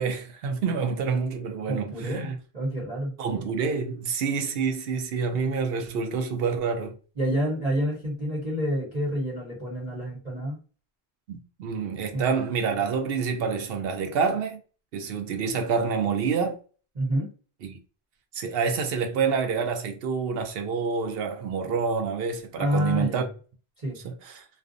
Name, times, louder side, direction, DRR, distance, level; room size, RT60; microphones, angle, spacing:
voice 1, 0.0-2.4 3.2-6.9 11.3-14.6 14.9-16.6 17.6-17.8 18.3-23.3 24.0-24.5, right 5 dB, 70° right, 0.7 m, -27 dB
voice 2, 1.7-3.1 7.2-10.6 12.1-12.2 16.9-17.3 22.6-23.3 23.8-24.0, equal, 40° right, 1.0 m, -28 dB
2.4 x 2.2 x 2.5 m
omnidirectional pair, 1.1 m